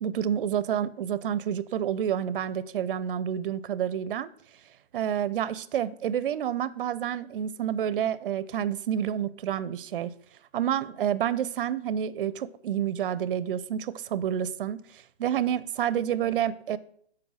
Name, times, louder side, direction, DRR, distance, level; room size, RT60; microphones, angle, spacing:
voice 1, 0.0-4.3 4.9-10.1 10.5-16.8, right 9 dB, 55° right, 0.4 m, -29 dB
6.2 x 4.4 x 6.2 m
hypercardioid pair, 155°, 33 cm